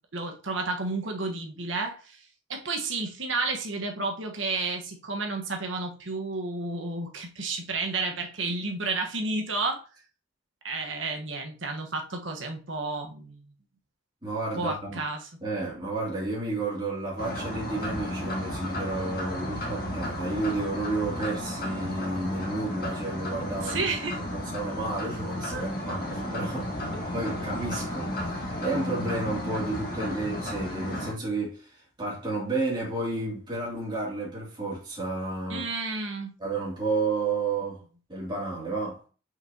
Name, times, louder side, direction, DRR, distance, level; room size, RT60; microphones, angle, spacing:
voice 1, 0.1-2.2 2.5-9.8 10.6-13.4 14.5-15.3 23.6-24.2 25.5-25.7 35.5-36.3, right 3 dB, 75° right, 1.4 m, -31 dB
voice 2, 14.2-15.0 15.4-23.8 24.3-26.7 27.1-35.7 36.4-37.8 38.1-39.0, right 2 dB, 25° right, 2.7 m, -31 dB
sound 1, 17.2-31.1, left 1 dB, 50° left, 2.0 m, -33 dB
5.9 x 5.7 x 2.9 m
head